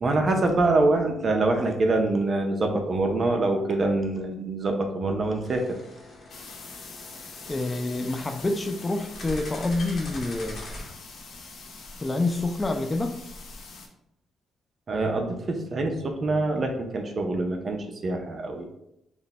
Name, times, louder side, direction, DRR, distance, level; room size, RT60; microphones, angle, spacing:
voice 1, 0.0-5.6 14.9-18.7, right 2 dB, 40° right, 3 dB, 0.6 m, -25 dB
sound 1, 5.4-10.9, left 1 dB, 50° left, 1.0 m, -42 dB
sound 2, 6.3-13.9, left 3 dB, 65° left, 0.7 m, -44 dB
voice 2, 7.5-10.6 12.0-13.2, left 2 dB, 20° left, 7 dB, 0.3 m, -27 dB
3.3 x 2.2 x 3.9 m, 0.80 s
cardioid pair, 90°, 0 cm